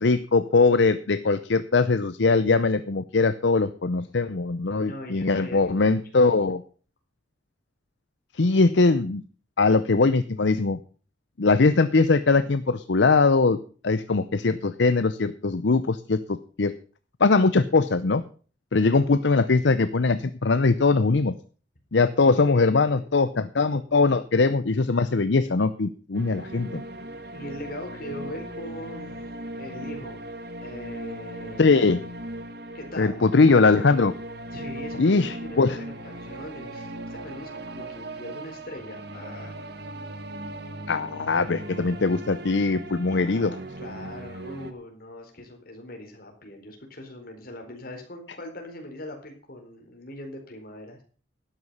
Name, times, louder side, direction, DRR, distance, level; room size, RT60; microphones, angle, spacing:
voice 1, 0.0-6.6 8.3-9.2 9.6-10.8 11.4-13.6 13.8-16.7 17.2-18.2 18.7-21.3 21.9-26.8 31.6-32.0 33.0-34.1 35.0-35.8 40.9-43.5, left 3 dB, 75° left, 12 dB, 0.7 m, -21 dB
voice 2, 4.6-5.8 8.5-8.6 22.2-23.0 27.3-30.2 30.6-31.7 32.7-33.2 34.5-39.6 43.1-51.0, left 1 dB, 55° left, 2 dB, 4.3 m, -41 dB
sound 1, 26.1-44.7, right 1 dB, 60° right, 1.4 m, -38 dB
12.5 x 9.7 x 5.5 m, 0.40 s
head